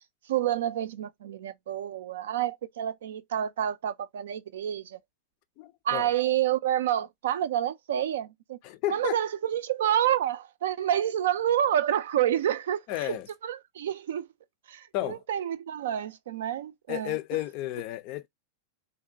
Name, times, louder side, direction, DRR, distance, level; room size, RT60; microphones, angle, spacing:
voice 1, 0.3-5.0 5.8-8.6 8.9-13.2 13.4-14.3 14.7-17.4, right 11 dB, 60° right, 0.3 m, -28 dB
voice 2, 5.6-6.1 8.6-9.2 12.9-13.3 14.9-15.2 16.9-18.3, left 15 dB, 45° left, 0.4 m, -32 dB
2.5 x 2.0 x 2.6 m
figure-of-eight pair, 90°, 0 cm